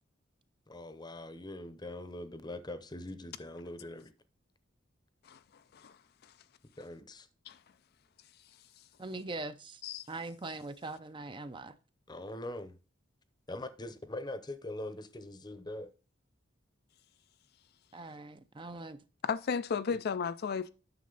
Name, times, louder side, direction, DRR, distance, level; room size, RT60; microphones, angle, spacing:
voice 1, 0.7-4.1 6.8-7.3 12.1-12.8 13.5-15.9 19.9-20.0, left 1 dB, 20° left, 0.8 m, -42 dB
voice 2, 5.2-6.3 7.5-7.6 8.8-8.9 9.8-10.1 19.2-20.7, left 6 dB, 50° left, 0.4 m, -35 dB
voice 3, 9.0-9.8 10.1-11.7 17.9-19.0, right 2 dB, 25° right, 0.5 m, -41 dB
9.6 x 6.4 x 3.9 m
head